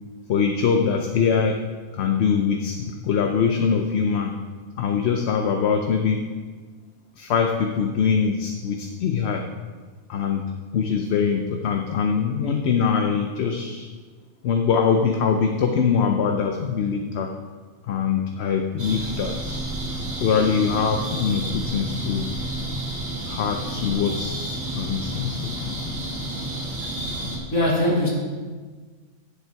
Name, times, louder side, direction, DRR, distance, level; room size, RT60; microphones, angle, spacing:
voice 1, 0.3-1.6 1.9-4.3 4.8-6.3 7.2-9.4 10.1-13.9 14.4-17.3 17.8-19.7 20.2-22.3 23.3-25.8 26.8-26.9, left 6 dB, 60° left, 4 dB, 0.8 m, -23 dB
sound 1, 18.8-27.4, right 1 dB, 55° right, 2.5 m, -30 dB
voice 2, 27.5-28.1, left 1 dB, 80° left, -4 dB, 2.3 m, -22 dB
10.0 x 7.5 x 4.5 m, 1.5 s
omnidirectional pair, 1.4 m